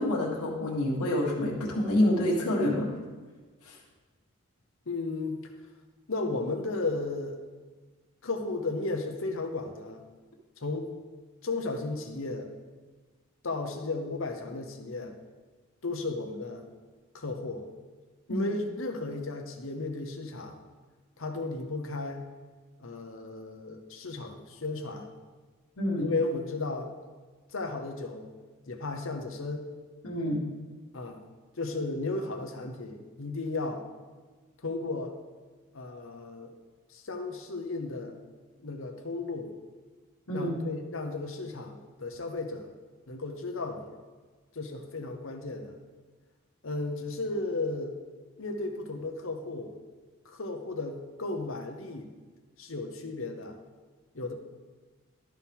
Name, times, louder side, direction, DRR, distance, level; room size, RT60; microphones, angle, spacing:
voice 1, 0.0-2.9 3.6-3.7 18.3-18.5 25.8-26.0 30.0-30.4 40.3-40.5, left 1 dB, 90° left, -5 dB, 1.7 m, -27 dB
voice 2, 4.9-5.4 6.1-7.4 8.2-10.0 10.6-10.9 11.4-12.5 13.4-15.1 15.8-16.6 17.1-17.6 18.3-20.6 21.2-22.2 22.8-25.1 26.0-26.9 27.5-28.3 28.7-29.7 30.9-31.2 31.6-33.8 34.6-35.2 35.7-36.5 36.9-38.2 38.6-39.5 40.3-42.7 43.1-43.9 44.5-45.7 46.6-47.9 48.4-49.7 50.2-52.1 52.6-53.6 54.1-54.3, left 3 dB, 65° left, 4 dB, 0.9 m, -34 dB
12.5 x 4.6 x 3.6 m, 1.4 s
head